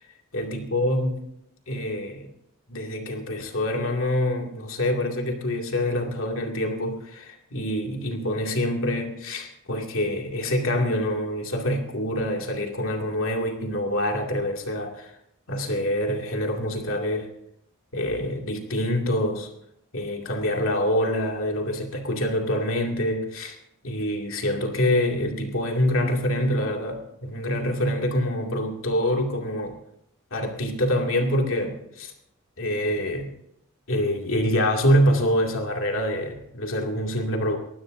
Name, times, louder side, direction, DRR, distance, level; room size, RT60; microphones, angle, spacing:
voice 1, 0.3-1.2 1.7-2.3 2.7-15.2 15.5-17.3 17.9-19.5 19.9-23.6 23.8-29.8 30.3-32.1 32.6-33.3 33.9-37.6, equal, 70° left, 2 dB, 2.4 m, -26 dB
22.0 x 16.0 x 2.7 m, 0.77 s
head